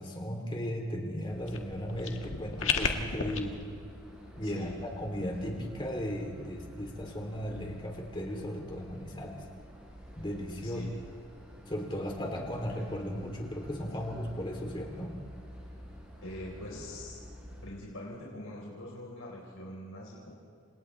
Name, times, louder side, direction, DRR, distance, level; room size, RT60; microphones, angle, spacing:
voice 1, 0.0-3.6 4.4-9.4 10.2-10.8 11.7-15.1, equal, 25° left, 1 dB, 3.0 m, -36 dB
sound 1, 1.3-17.7, equal, 5° right, 6.4 m, -50 dB
sound 2, 1.5-3.4, left 5 dB, 65° left, 1.7 m, -32 dB
voice 2, 4.4-4.8 6.8-6.9 10.6-10.9 16.2-17.2 17.6-20.3, left 1 dB, 80° left, -4 dB, 4.2 m, -43 dB
30.0 x 26.5 x 3.3 m, 2.3 s
head